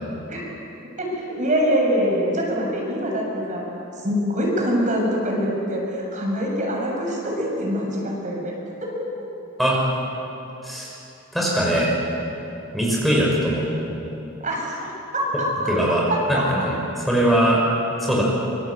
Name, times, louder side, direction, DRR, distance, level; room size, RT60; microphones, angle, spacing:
voice 1, 1.0-3.6 4.0-8.5 8.8-9.3 14.4-15.5 16.3-16.7, equal, 35° right, -1 dB, 7.0 m, -24 dB
voice 2, 11.3-11.9 12.7-13.6 15.7-16.0 16.3-17.6 18.0-18.2, right 1 dB, ahead, -4 dB, 6.1 m, -21 dB
27.0 x 26.5 x 8.4 m, 2.9 s
head